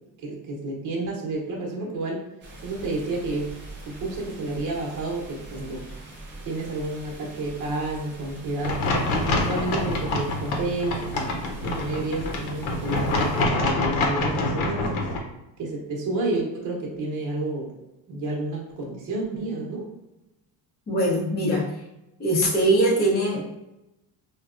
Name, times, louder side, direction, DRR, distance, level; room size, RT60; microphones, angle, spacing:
voice 1, 0.2-2.2 2.6-3.5 3.9-5.8 6.4-8.8 9.3-15.0 15.6-17.7 18.1-19.9, right 2 dB, 40° right, -1 dB, 0.9 m, -30 dB
sound 1, 2.4-13.4, right 2 dB, 25° right, 0.5 m, -41 dB
sound 2, 8.6-15.2, left 2 dB, 90° left, 0.9 m, -26 dB
voice 2, 20.9-21.8 22.2-23.4, right 1 dB, 20° left, -4 dB, 0.7 m, -22 dB
4.6 x 2.3 x 2.4 m, 0.94 s
cardioid pair, 180°, 48 cm